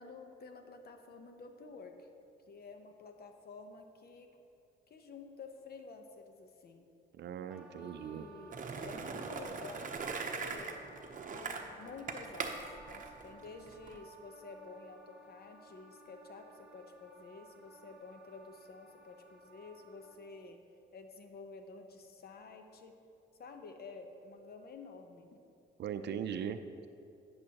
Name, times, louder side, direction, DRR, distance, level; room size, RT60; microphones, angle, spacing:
voice 1, 0.0-2.1 2.5-4.3 4.9-6.9 7.8-8.6 8.8-10.8 11.3-20.6 20.9-23.0 23.3-25.4, left 4 dB, 50° left, 6 dB, 0.9 m, -51 dB
voice 2, 7.1-8.3 25.8-26.9, right 8 dB, 60° right, 10 dB, 0.5 m, -39 dB
Wind instrument woodwind instrument, 7.5-20.4, right 3 dB, 5° right, 1.4 m, -58 dB
Skateboard, 8.5-14.0, right 4 dB, 40° right, 0.8 m, -41 dB
11.0 x 8.8 x 2.9 m, 2.5 s
cardioid pair, 90°, 20 cm